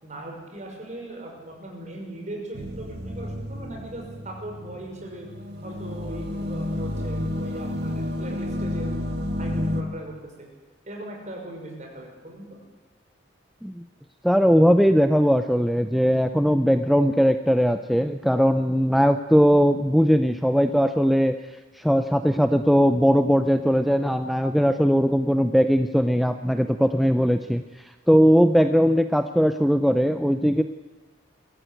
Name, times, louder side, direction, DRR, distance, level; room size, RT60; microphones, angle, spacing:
voice 1, 0.0-5.3 5.6-8.9 9.4-10.3 10.9-12.4, right 1 dB, 40° right, 0 dB, 5.9 m, -39 dB
sound 1, 2.5-9.8, left 1 dB, 60° right, 2.1 m, -31 dB
voice 2, 14.2-21.3 21.8-27.6 28.1-30.6, equal, ahead, 8 dB, 0.6 m, -19 dB
22.5 x 14.0 x 9.2 m, 1.3 s
head